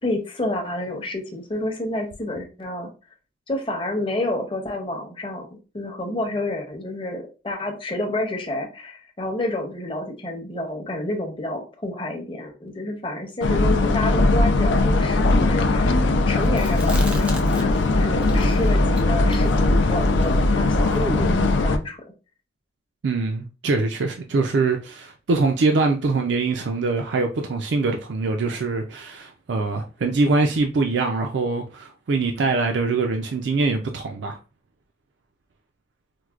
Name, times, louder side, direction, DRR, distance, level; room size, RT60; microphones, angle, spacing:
voice 1, 0.0-2.9 3.5-16.0 16.3-22.0, left 1 dB, 30° left, 0.7 m, -29 dB
sound 1, 13.4-21.8, left 2 dB, 90° left, 0.4 m, -19 dB
Chewing mastication, 16.5-17.9 18.2-21.6, equal, 5° right, 0.3 m, -34 dB
voice 2, 23.0-34.4, right 3 dB, 80° right, 0.4 m, -23 dB
4.5 x 2.1 x 2.4 m
head